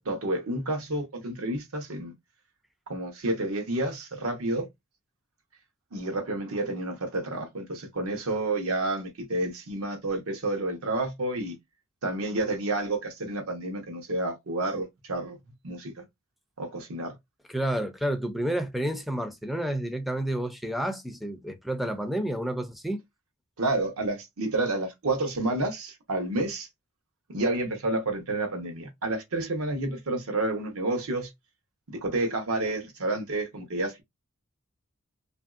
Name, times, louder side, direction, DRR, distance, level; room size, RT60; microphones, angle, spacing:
voice 1, 0.0-2.1 2.9-4.7 5.9-11.5 12.0-15.4 15.6-16.0 16.6-17.1 23.6-26.7 27.3-31.3 31.9-34.0, right 2 dB, 75° right, 0.9 m, -30 dB
voice 2, 17.5-23.0, right 1 dB, ahead, 0.4 m, -30 dB
3.0 x 2.6 x 2.4 m
head